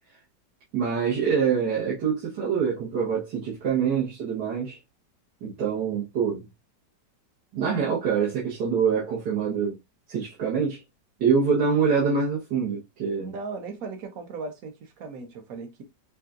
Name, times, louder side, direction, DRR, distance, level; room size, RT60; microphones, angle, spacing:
voice 1, 0.7-4.8 5.4-6.5 7.5-9.8 10.1-10.8 11.2-13.3, right 6 dB, 80° right, 1.9 m, -25 dB
voice 2, 13.2-15.8, right 4 dB, 60° right, 1.2 m, -37 dB
5.6 x 2.5 x 2.4 m
omnidirectional pair, 1.9 m